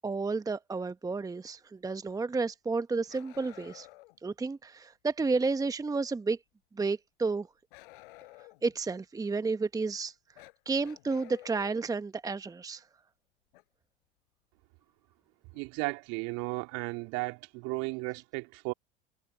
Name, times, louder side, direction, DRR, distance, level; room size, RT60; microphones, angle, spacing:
voice 1, 0.0-3.9 4.2-6.4 6.8-7.5 8.6-10.1 10.7-12.8, right 4 dB, 10° right, 1.1 m, -31 dB
Bark, 3.1-4.2 7.7-8.7 10.3-11.9 13.5-13.6 15.5-15.6 16.7-16.8, left 21 dB, 65° left, 5.3 m, -52 dB
voice 2, 15.5-18.7, right 29 dB, 55° right, 3.6 m, -35 dB
figure-of-eight pair, 75°, 29 cm